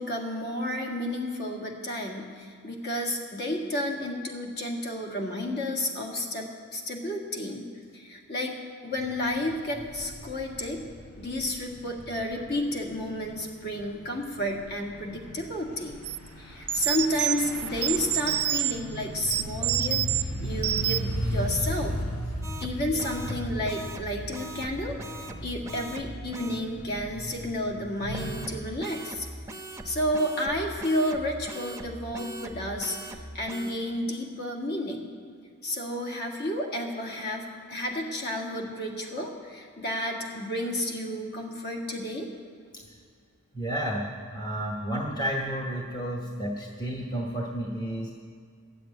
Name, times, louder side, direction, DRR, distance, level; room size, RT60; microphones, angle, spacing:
voice 1, 0.0-7.6 7.9-8.6 8.8-10.8 11.2-16.0 16.4-22.0 22.6-29.3 29.8-35.1 35.6-42.3, left 1 dB, 50° left, 0 dB, 1.9 m, -31 dB
sound 1, 8.9-28.4, equal, 85° left, 4.4 m, -37 dB
sound 2, 16.0-16.2 16.7-18.8 19.3-20.2 20.6-21.2, right 12 dB, 85° right, 0.5 m, -27 dB
sound 3, 22.4-26.6 28.1-33.7, right 1 dB, 15° right, 0.7 m, -40 dB
voice 2, 43.5-48.1, right 1 dB, 20° left, -1 dB, 1.0 m, -31 dB
12.5 x 7.6 x 9.0 m, 2.2 s
head